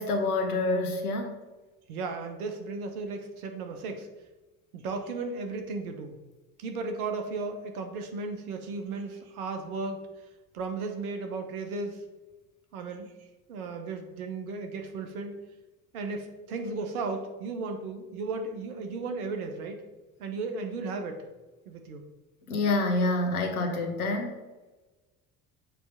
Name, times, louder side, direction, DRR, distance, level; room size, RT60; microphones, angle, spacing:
voice 1, 0.0-1.4 22.5-24.4, left 2 dB, 85° left, 3 dB, 1.2 m, -27 dB
voice 2, 1.9-4.1 4.7-6.2 6.6-10.0 10.5-12.0 12.7-13.1 13.5-15.4 15.9-19.8 20.2-21.3 21.7-22.1, right 3 dB, 80° right, 5 dB, 1.1 m, -35 dB
7.4 x 3.3 x 5.6 m, 1.2 s
hypercardioid pair, 60°, 43 cm